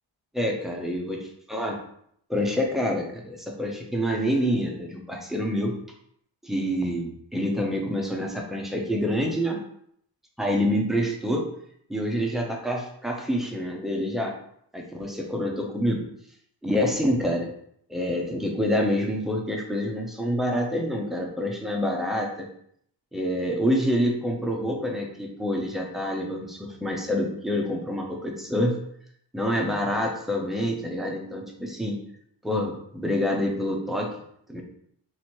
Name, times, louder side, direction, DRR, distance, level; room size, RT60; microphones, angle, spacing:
voice 1, 0.3-1.2 1.5-1.8 2.3-5.8 6.4-9.6 10.4-11.5 11.9-14.3 14.7-16.0 16.6-17.5 17.9-22.3 23.1-28.8 29.3-32.0 32.4-34.1 34.5-34.6, equal, ahead, 0 dB, 0.8 m, -27 dB
3.1 x 2.8 x 4.4 m, 0.68 s
wide cardioid pair, 95°, 46 cm